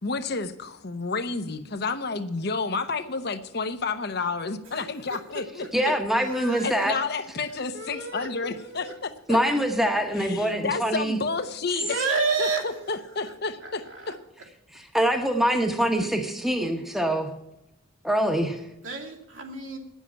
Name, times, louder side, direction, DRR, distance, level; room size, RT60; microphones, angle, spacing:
voice 1, 0.0-5.9 6.6-9.4 10.2-12.0 12.4-14.1, left 4 dB, 50° left, 9 dB, 0.8 m, -30 dB
voice 2, 4.7-5.4 6.2-6.8 7.7-8.9 9.5-9.6 11.8-13.3 13.6-14.2 16.0-16.1 18.8-19.8, right 4 dB, 70° right, -1 dB, 2.4 m, -31 dB
voice 3, 5.7-7.0 9.3-11.2 14.7-17.3 18.0-18.6, right 1 dB, ahead, 4 dB, 1.0 m, -24 dB
9.9 x 7.3 x 8.4 m, 0.89 s
head